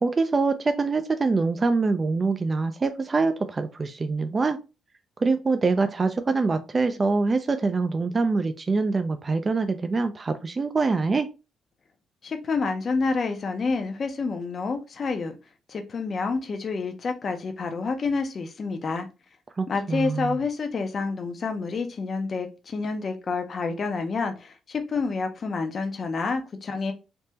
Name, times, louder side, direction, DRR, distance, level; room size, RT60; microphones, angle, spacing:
voice 1, 0.0-4.6 5.2-11.3 19.6-20.4, right 3 dB, 30° right, 0.3 m, -24 dB
voice 2, 12.2-15.4 15.7-19.1 19.7-26.9, left 4 dB, 45° left, 0.5 m, -28 dB
3.4 x 2.1 x 2.8 m
cardioid pair, 90°, 0 cm